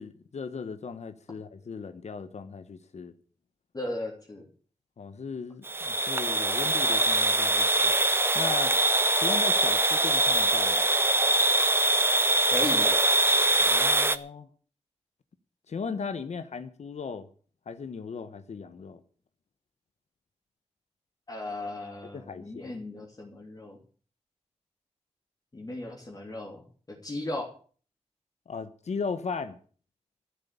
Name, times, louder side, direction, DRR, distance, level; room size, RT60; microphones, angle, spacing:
voice 1, 0.0-3.1 5.0-7.9 8.3-8.8 9.2-10.9 13.7-14.5 15.7-17.3 17.7-19.0 22.1-22.8 28.5-29.6, left 5 dB, 75° left, 1.1 m, -37 dB
voice 2, 3.7-4.5 12.5-12.9 21.3-23.8 25.5-27.5, left 1 dB, 35° left, 3.2 m, -36 dB
sound 1, 5.7-14.2, right 2 dB, 20° right, 0.8 m, -23 dB
14.0 x 8.1 x 8.4 m
wide cardioid pair, 120°, 12 cm